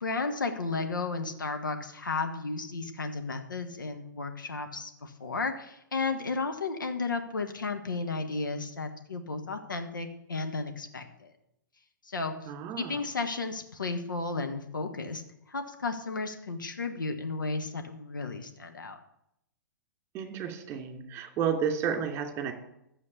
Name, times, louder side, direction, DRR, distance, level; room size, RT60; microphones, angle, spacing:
voice 1, 0.0-11.3 12.0-12.3 12.8-15.2 15.5-19.0, left 3 dB, 75° left, 5 dB, 1.4 m, -33 dB
voice 2, 12.5-13.0 20.1-22.5, right 7 dB, 25° right, 5 dB, 2.8 m, -32 dB
12.5 x 7.4 x 8.3 m, 0.80 s
figure-of-eight pair, 110°, 11 cm